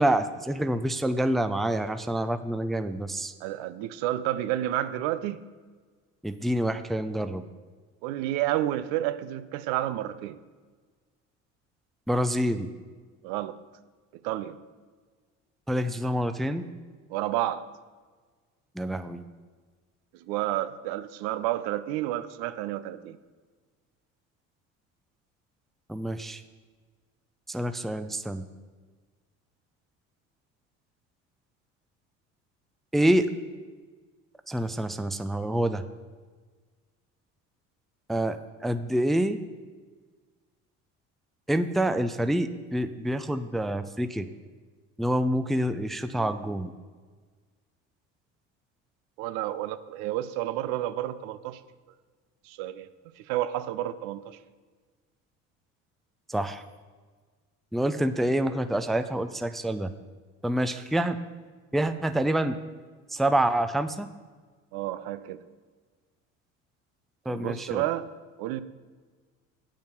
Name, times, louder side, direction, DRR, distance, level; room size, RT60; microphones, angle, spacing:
voice 1, 0.0-3.3 6.2-7.4 12.1-12.7 15.7-16.7 18.8-19.2 25.9-26.4 27.5-28.4 32.9-33.3 34.5-35.8 38.1-39.4 41.5-44.3 45.0-46.7 56.3-56.6 57.7-59.9 60.4-61.2 61.7-62.6 63.1-64.1 67.3-67.8, right 1 dB, ahead, 10 dB, 0.5 m, -27 dB
voice 2, 3.4-5.4 8.0-10.4 13.2-13.6 14.1-14.6 17.1-17.7 20.1-23.2 49.2-51.6 52.4-52.9 53.2-54.4 64.7-65.4 67.3-68.1 68.4-68.6, right 13 dB, 70° right, 13 dB, 0.7 m, -30 dB
8.7 x 7.5 x 5.8 m, 1.4 s
hypercardioid pair, 70°, 39 cm